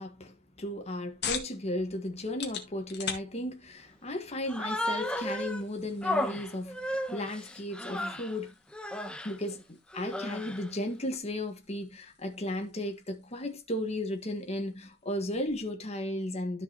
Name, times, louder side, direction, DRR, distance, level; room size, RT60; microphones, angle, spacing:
voice 1, 0.0-8.5 9.2-16.6, left 1 dB, 35° left, 1.7 m, -35 dB
sound 1, 0.6-15.7, left 7 dB, 60° left, 2.0 m, -46 dB
Human voice, 4.5-5.6 6.0-8.4 8.7-9.3 9.9-10.7, left 1 dB, 5° left, 1.0 m, -34 dB
13.0 x 5.4 x 3.0 m
head